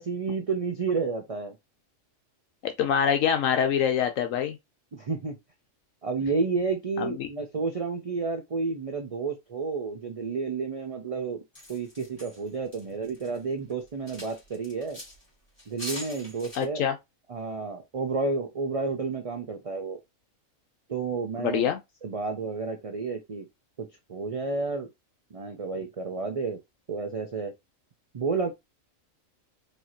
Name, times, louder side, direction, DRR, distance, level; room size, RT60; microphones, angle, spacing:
voice 1, 0.0-1.5 4.9-5.3 6.0-11.4 11.7-15.0 15.7-16.8 17.3-20.0 20.9-21.7 22.0-23.5 23.8-24.9 25.3-26.6 26.9-27.5 28.1-28.5, right 4 dB, 45° right, 0.4 m, -31 dB
voice 2, 2.6-4.6 7.0-7.3 16.5-16.9 21.4-21.8, left 8 dB, 75° left, 1.0 m, -25 dB
sound 1, 11.5-13.4 13.7-15.2 15.6-16.6, left 1 dB, 20° left, 1.9 m, -42 dB
4.7 x 2.8 x 2.8 m
omnidirectional pair, 1.4 m